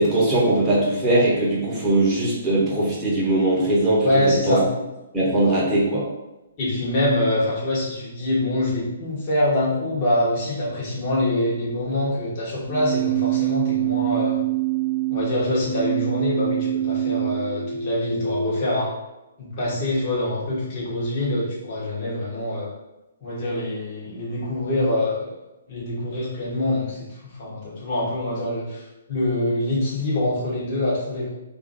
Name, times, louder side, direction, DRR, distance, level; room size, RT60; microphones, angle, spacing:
voice 1, 0.0-4.6 5.1-6.1, right 1 dB, 10° right, -8 dB, 1.0 m, -20 dB
voice 2, 4.0-4.7 6.6-14.4 15.1-18.9 19.4-22.7 23.2-25.3 25.7-31.3, left 1 dB, 35° left, -6 dB, 1.1 m, -25 dB
Keyboard (musical), 12.7-18.6, right 11 dB, 15° left, 0.8 m, -25 dB
3.0 x 2.5 x 4.0 m, 0.99 s
figure-of-eight pair, 125°, 0 cm